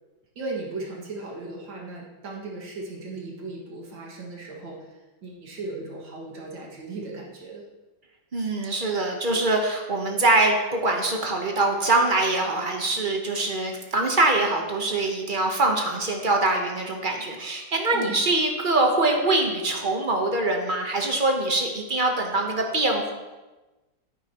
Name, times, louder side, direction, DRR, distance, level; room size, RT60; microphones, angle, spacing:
voice 1, 0.4-7.6 17.9-18.3, right 3 dB, 70° right, -3 dB, 2.6 m, -37 dB
voice 2, 8.3-23.1, right 2 dB, 35° right, 2 dB, 0.8 m, -23 dB
9.6 x 9.4 x 3.0 m, 1.1 s
omnidirectional pair, 2.1 m